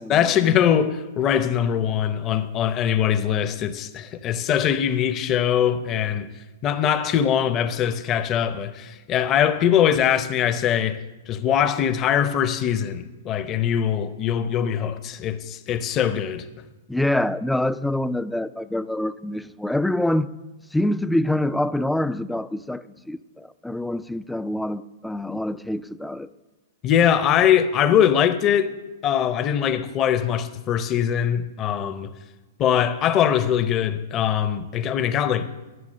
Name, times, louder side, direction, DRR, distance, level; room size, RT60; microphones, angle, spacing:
voice 1, 0.1-6.3 6.6-11.0 11.3-16.5 26.8-28.7 29.0-32.1 32.6-35.5, left 9 dB, 30° left, 0.7 m, -22 dB
voice 2, 16.9-20.3 20.7-26.3, left 1 dB, 5° left, 0.3 m, -25 dB
11.0 x 7.2 x 6.3 m
hypercardioid pair, 125°, 0 cm